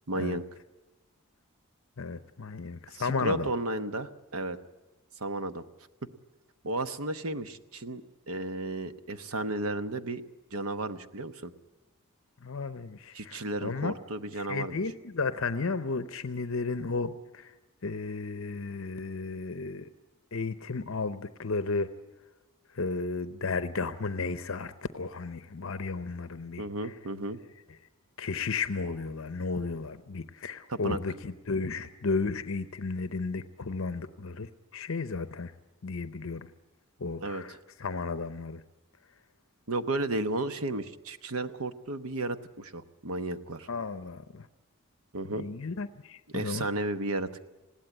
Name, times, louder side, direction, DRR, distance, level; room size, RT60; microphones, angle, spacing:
voice 1, 0.1-0.4 2.9-4.6 5.2-5.6 6.6-8.0 8.3-10.2 10.5-11.5 13.1-14.8 26.6-27.4 30.7-31.0 37.2-37.6 39.7-43.7 45.1-45.5 46.3-47.4, right 2 dB, 75° right, 11 dB, 1.0 m, -33 dB
voice 2, 2.0-3.5 12.4-14.0 14.4-17.5 17.8-19.9 20.3-21.9 22.7-26.6 28.2-35.5 35.8-36.5 37.0-38.6 43.7-44.5 45.4-46.7, left 4 dB, 60° left, 11 dB, 0.7 m, -33 dB
20.5 x 16.0 x 8.9 m, 1.1 s
head